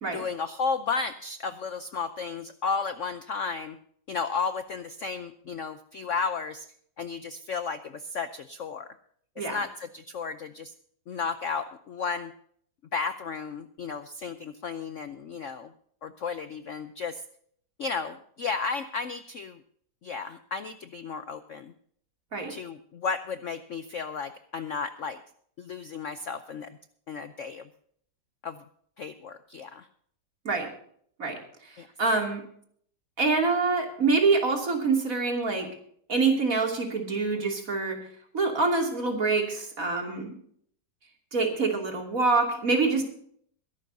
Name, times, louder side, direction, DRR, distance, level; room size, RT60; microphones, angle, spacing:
voice 1, 0.1-3.8 4.1-6.7 7.0-8.9 9.4-10.7 11.1-12.3 12.9-15.7 16.0-17.2 17.8-19.6 20.0-21.7 22.5-25.2 25.6-26.8 27.1-27.6 28.4-28.6 29.0-29.9 31.8-31.9, left 5 dB, 60° left, 10 dB, 0.8 m, -33 dB
voice 2, 31.2-31.7 32.0-32.4 33.2-35.7 36.1-38.0 38.3-40.3 41.3-43.0, right 4 dB, 45° right, 2 dB, 3.1 m, -25 dB
22.0 x 12.0 x 2.7 m, 0.62 s
omnidirectional pair, 2.0 m